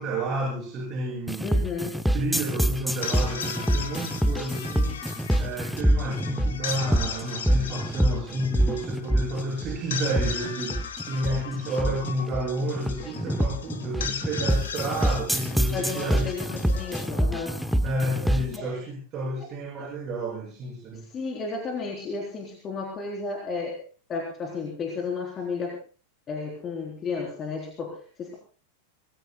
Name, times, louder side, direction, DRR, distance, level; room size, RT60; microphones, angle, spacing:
voice 1, 0.0-1.6 2.1-5.1 5.4-16.3 17.8-21.0, right 1 dB, 35° right, -2 dB, 7.2 m, -30 dB
sound 1, 1.3-18.6, right 1 dB, ahead, 1.2 m, -26 dB
voice 2, 1.4-1.9 15.7-17.6 18.5-18.7 19.3-19.5 19.8-19.9 20.9-23.8 24.1-25.8 26.3-28.3, left 4 dB, 25° left, 0 dB, 4.1 m, -33 dB
sound 2, 2.8-18.1, left 7 dB, 65° left, 2.5 m, -38 dB
26.0 x 20.5 x 2.4 m, 0.38 s
figure-of-eight pair, 90°, 0 cm